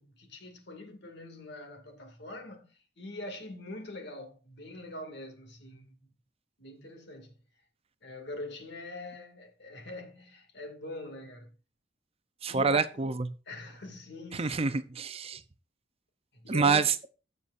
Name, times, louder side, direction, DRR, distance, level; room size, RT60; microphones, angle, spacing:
voice 1, 0.0-6.1 6.6-7.4 8.0-11.5 12.5-12.8 13.5-14.7 16.3-16.8, left 2 dB, 60° left, 2.3 m, -43 dB
voice 2, 12.4-13.3 14.3-15.4 16.5-16.9, right 5 dB, 30° right, 0.6 m, -27 dB
16.0 x 7.0 x 2.5 m
head